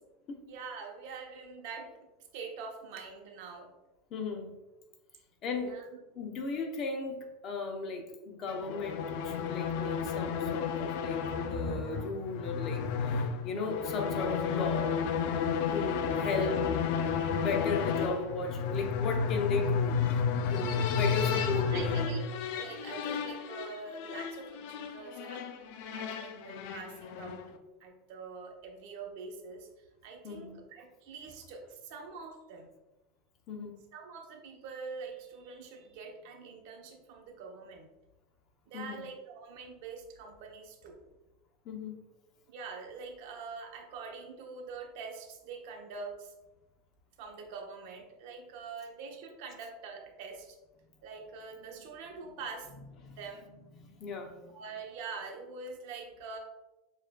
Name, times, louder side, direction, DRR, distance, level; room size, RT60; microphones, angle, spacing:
voice 1, 0.5-1.9 2.3-3.7 5.6-5.9 16.4-16.5 21.3-25.5 25.8-27.4 27.8-29.7 30.0-32.7 33.9-37.9 38.7-41.0 42.5-46.3 47.2-50.6 51.0-52.7 53.2-53.4 54.5-56.4, right 4 dB, 65° right, 2 dB, 0.8 m, -44 dB
voice 2, 4.1-4.6 5.4-5.8 6.1-11.2 11.5-14.9 15.7-16.7 17.2-22.1 30.2-30.6 33.5-33.7 38.7-39.0 41.6-42.0 53.0-53.2 53.8-54.5, left 3 dB, 40° left, 3 dB, 0.7 m, -36 dB
sound 1, 8.5-27.5, left 6 dB, 65° left, 0.4 m, -32 dB
6.9 x 2.5 x 2.2 m, 1.0 s
supercardioid pair, 135°, 0 cm